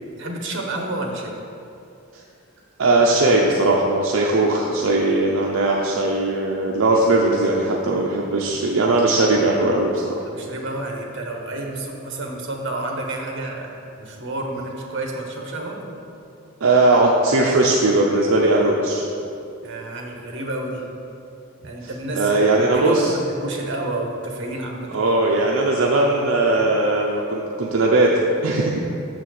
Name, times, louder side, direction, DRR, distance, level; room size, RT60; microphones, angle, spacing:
voice 1, 0.2-1.4 10.2-15.8 19.6-20.9 21.6-25.0, right 2 dB, 60° right, 1 dB, 1.1 m, -30 dB
voice 2, 2.8-10.0 16.6-19.1 22.1-23.1 24.9-28.8, right 2 dB, 80° right, -2 dB, 0.6 m, -19 dB
6.3 x 4.2 x 6.4 m, 2.6 s
head